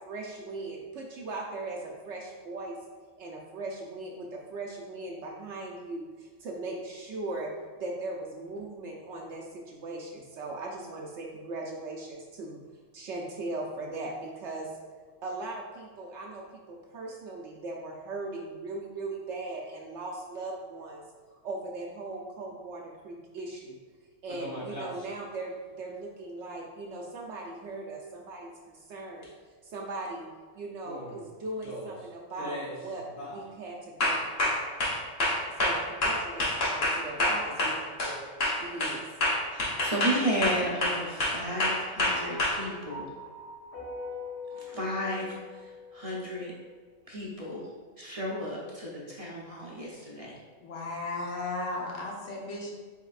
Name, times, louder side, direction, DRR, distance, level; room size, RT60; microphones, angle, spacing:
voice 1, 0.1-2.8 3.2-7.5 7.8-12.6 12.9-14.7 15.2-21.0 21.3-23.8 24.2-29.3 29.6-30.3 30.5-34.5 35.6-38.3 38.6-39.0, right 2 dB, 70° right, -1 dB, 0.8 m, -39 dB
sound 1, 24.3-25.0 29.2-29.3 30.8-31.1 31.6-31.9 32.4-32.7 33.2-33.4 34.0-38.2 38.4-42.5, left 1 dB, 55° left, 1.3 m, -28 dB
voice 2, 39.5-43.0 44.5-45.3 45.5-46.5 47.1-47.6 48.0-50.3, equal, 40° right, -4 dB, 0.6 m, -33 dB
sound 2, 42.1-46.5, left 3 dB, 15° left, 1.0 m, -43 dB
voice 3, 50.6-52.7, left 2 dB, 80° left, -2 dB, 1.3 m, -35 dB
4.6 x 4.3 x 2.4 m, 1.5 s
omnidirectional pair, 1.3 m